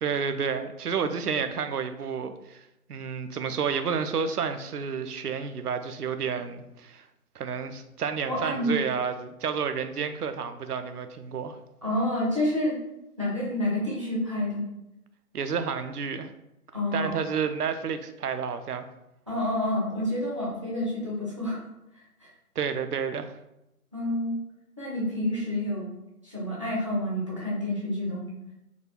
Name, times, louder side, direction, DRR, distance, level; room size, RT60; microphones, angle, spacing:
voice 1, 0.0-2.6 2.9-7.1 7.4-11.6 15.3-16.3 16.9-18.9 22.6-23.3, right 6 dB, 80° right, 9 dB, 0.5 m, -30 dB
voice 2, 8.3-8.8 11.8-12.7 13.2-14.6 16.7-17.1 19.3-21.6 22.2-22.3 23.9-24.4 24.8-25.9 26.2-28.3, left 1 dB, 20° right, -6 dB, 0.5 m, -28 dB
3.9 x 2.2 x 2.9 m, 0.90 s
figure-of-eight pair, 145°, 46 cm